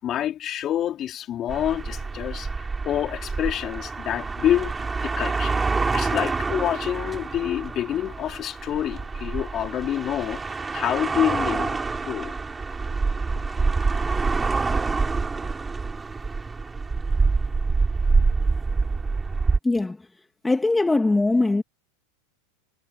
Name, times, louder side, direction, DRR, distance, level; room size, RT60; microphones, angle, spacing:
voice 1, 0.0-2.5 2.8-5.6 5.9-10.4 10.7-12.3, left 11 dB, 35° left, 4.7 m, -27 dB
sound 1, 1.5-19.6, right 4 dB, 15° right, 5.7 m, -26 dB
voice 2, 19.6-20.0 20.4-21.6, left 2 dB, 10° left, 2.2 m, -21 dB
hypercardioid pair, 105°, 0 cm